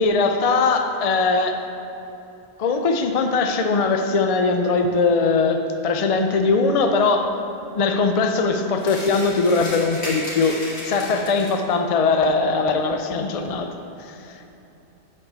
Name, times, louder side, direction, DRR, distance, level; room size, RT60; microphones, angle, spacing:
voice 1, 0.0-1.6 2.6-7.4 7.7-13.7 14.0-14.4, left 4 dB, 55° left, 5 dB, 0.4 m, -20 dB
sound 1, 8.8-11.7, left 1 dB, 90° left, 2.4 m, -34 dB
7.0 x 5.4 x 6.8 m, 2.9 s
omnidirectional pair, 1.2 m